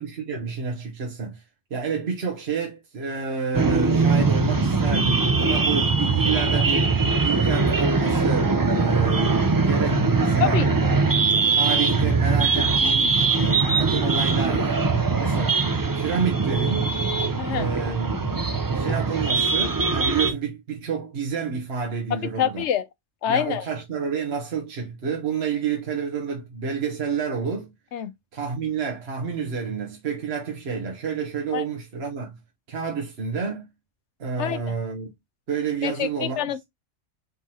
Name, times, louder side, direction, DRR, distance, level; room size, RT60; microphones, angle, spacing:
voice 1, 0.0-1.4 1.7-10.6 11.0-11.2 11.5-14.8 15.2-16.9 17.5-18.5 18.8-22.6 23.3-27.7 28.3-32.4 32.7-33.7 34.2-35.1 35.5-36.5, right 5 dB, 60° right, 1.3 m, -29 dB
sound 1, 3.5-20.3, right 4 dB, 25° right, 0.4 m, -21 dB
voice 2, 10.4-11.0 17.4-17.7 22.4-22.9 23.2-23.6 27.9-28.1 31.5-31.6 34.4-34.6 35.8-36.6, left 9 dB, 75° left, 0.9 m, -26 dB
4.6 x 3.9 x 2.8 m
omnidirectional pair, 1.2 m